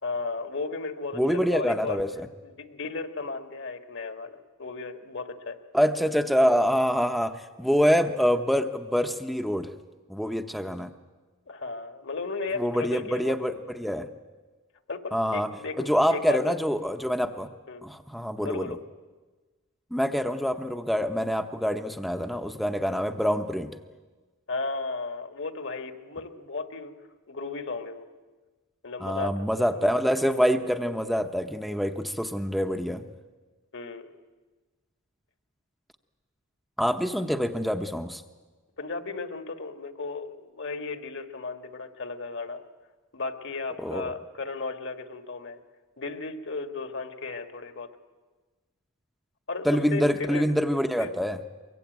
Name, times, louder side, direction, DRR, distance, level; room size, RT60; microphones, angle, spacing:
voice 1, 0.0-2.0 2.4-5.6 11.5-13.3 14.9-16.6 17.7-17.8 18.4-18.8 24.5-26.9 27.3-28.1 28.8-29.9 33.7-34.1 38.8-42.6 43.1-45.6 46.0-47.9 49.5-50.5 51.0-51.1, left 3 dB, 60° left, 7 dB, 1.7 m, -35 dB
voice 2, 1.2-2.3 5.7-9.7 10.1-10.9 12.6-14.1 15.1-15.5 15.8-17.5 17.8-18.8 19.9-23.7 29.0-33.1 36.8-38.2 43.8-44.1 49.7-51.4, equal, ahead, 6 dB, 0.8 m, -26 dB
23.5 x 22.5 x 9.3 m, 1.3 s
head